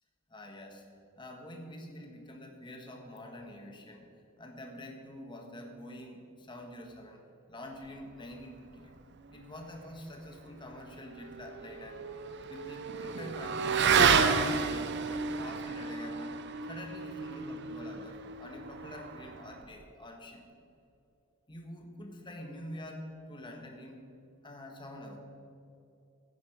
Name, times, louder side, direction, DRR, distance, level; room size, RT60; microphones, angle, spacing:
voice 1, 0.3-0.8 1.2-4.1 4.4-7.2 7.5-8.9 9.3-12.1 12.5-20.5 21.5-24.1 24.4-25.2, left 1 dB, 20° left, 2 dB, 1.5 m, -46 dB
Motorcycle / Accelerating revving vroom, 11.0-19.7, right 5 dB, 50° right, 0.6 m, -31 dB
15.0 x 9.5 x 5.1 m, 2.6 s
head